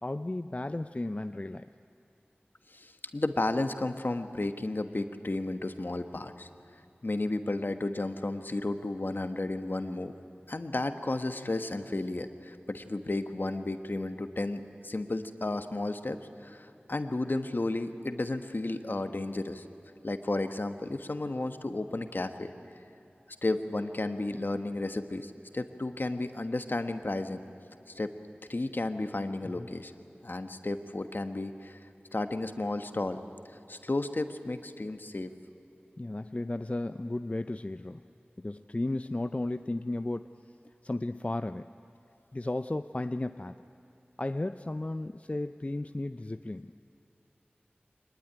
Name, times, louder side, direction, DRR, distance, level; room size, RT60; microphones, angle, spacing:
voice 1, 0.0-1.7 29.4-29.7 36.0-38.0 38.4-40.3 40.8-41.7 42.3-43.6 44.2-46.7, left 2 dB, 35° left, 10 dB, 0.5 m, -34 dB
voice 2, 2.7-6.5 7.0-10.1 10.5-19.6 20.0-22.5 23.4-27.4 27.9-28.1 28.5-29.9 30.2-31.9 32.1-33.2 33.7-35.3, left 2 dB, 60° left, 8 dB, 1.3 m, -33 dB
23.0 x 19.5 x 9.9 m, 2.7 s
wide cardioid pair, 45°, 4 cm